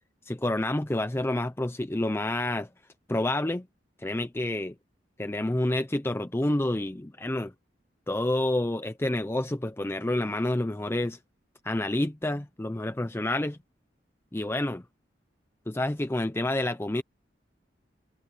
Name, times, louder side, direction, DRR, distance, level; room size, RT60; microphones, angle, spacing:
voice 1, 0.2-2.7 3.1-3.7 4.0-4.7 5.2-7.5 8.1-11.2 11.6-13.6 14.3-14.8 15.7-17.0, left 1 dB, 15° left, 0.6 m, -28 dB
head